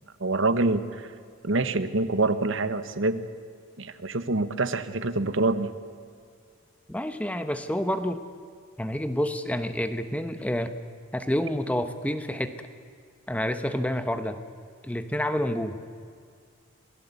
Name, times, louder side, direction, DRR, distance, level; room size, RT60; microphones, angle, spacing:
voice 1, 0.2-1.1 1.4-3.3 3.8-5.7, right 2 dB, 60° right, 12 dB, 1.1 m, -26 dB
voice 2, 6.9-8.2 8.8-10.7 11.1-12.5 13.3-14.4 14.8-15.8, equal, 5° left, 9 dB, 1.0 m, -28 dB
27.0 x 17.5 x 8.2 m, 2.2 s
head